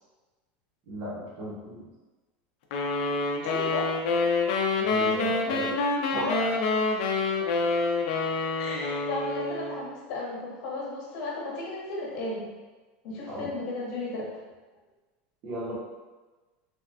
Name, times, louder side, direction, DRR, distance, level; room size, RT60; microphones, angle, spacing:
voice 1, 0.9-1.8 4.8-5.7 6.1-6.2 13.3-13.5 15.4-15.8, equal, 35° right, -6 dB, 0.7 m, -35 dB
sound 1, 2.7-9.9, left 3 dB, 60° left, 0.4 m, -27 dB
voice 2, 3.4-3.9 6.1-6.8 8.6-12.5 13.0-14.3, left 2 dB, 45° left, -4 dB, 0.8 m, -34 dB
3.2 x 2.1 x 2.6 m, 1.2 s
supercardioid pair, 175°, 5 cm